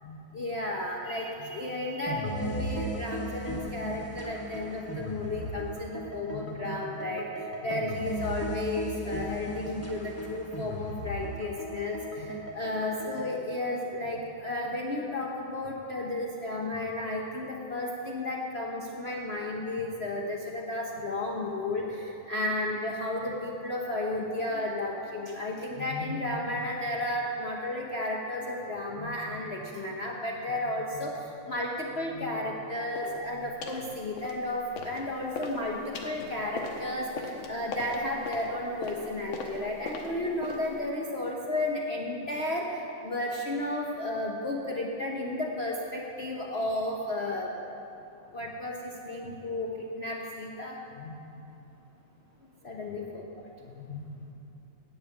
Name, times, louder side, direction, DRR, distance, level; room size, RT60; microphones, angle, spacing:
voice 1, 0.0-47.5 48.3-51.2 52.6-53.2 53.6-54.1, left 1 dB, 50° left, -2 dB, 0.8 m, -33 dB
sound 1, 2.1-13.3, right 1 dB, 20° left, 0.4 m, -36 dB
sound 2, 32.9-33.2 33.6-33.9 34.2-35.0 35.3-40.8, left 3 dB, 80° left, 1.9 m, -39 dB
10.0 x 7.4 x 8.4 m, 2.9 s
omnidirectional pair, 2.2 m